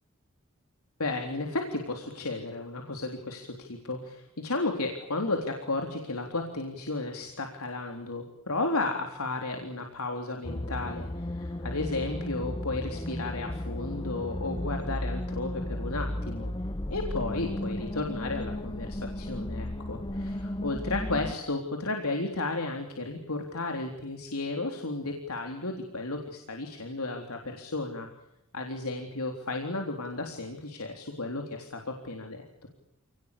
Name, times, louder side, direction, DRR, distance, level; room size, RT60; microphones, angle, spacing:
voice 1, 1.0-16.5 16.9-28.1 28.5-32.7, left 2 dB, 90° left, 3 dB, 3.7 m, -33 dB
sound 1, 10.4-21.3, left 1 dB, 20° left, 0.9 m, -34 dB
29.5 x 19.5 x 8.6 m, 0.87 s
head